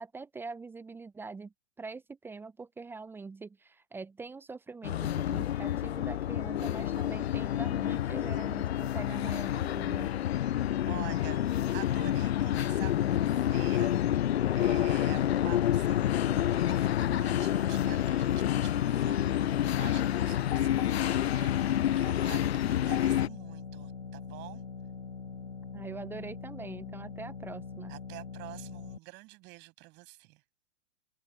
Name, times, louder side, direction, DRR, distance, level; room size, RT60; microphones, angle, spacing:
voice 1, 0.0-10.1 25.7-27.9, right 4 dB, 5° right, 0.9 m, -43 dB
sound 1, 4.8-23.3, left 11 dB, 60° left, 0.5 m, -28 dB
voice 2, 10.8-13.9 14.5-24.6 27.9-30.4, right 23 dB, 30° right, 7.2 m, -48 dB
sound 2, 13.0-29.0, left 4 dB, 80° left, 5.0 m, -43 dB
figure-of-eight pair, 125°, 37 cm